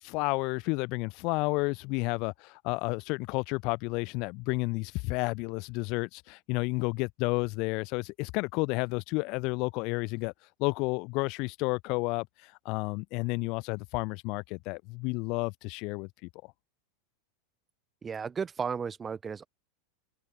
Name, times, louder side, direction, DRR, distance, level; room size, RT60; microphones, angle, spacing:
voice 1, 0.0-10.3 10.6-16.3, left 27 dB, 35° left, 2.9 m, -31 dB
voice 2, 18.0-19.5, right 6 dB, 10° right, 1.2 m, -34 dB
open air
supercardioid pair, 180°, 0 cm